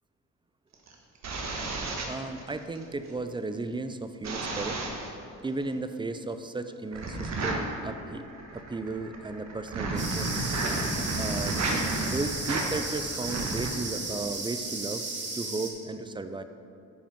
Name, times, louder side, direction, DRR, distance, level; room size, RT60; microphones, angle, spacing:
sound 1, 0.7-2.8 4.2-5.2 6.9-13.7, right 2 dB, 65° right, 1.4 m, -32 dB
voice 1, 2.1-4.8 5.4-8.3 8.5-10.3 11.2-11.6 12.1-15.1 15.3-16.4, right 3 dB, 15° right, 9 dB, 0.5 m, -34 dB
sound 2, 10.0-15.7, right 3 dB, 35° right, 1.7 m, -35 dB
11.0 x 5.0 x 5.2 m, 2.6 s
cardioid pair, 90°, 30 cm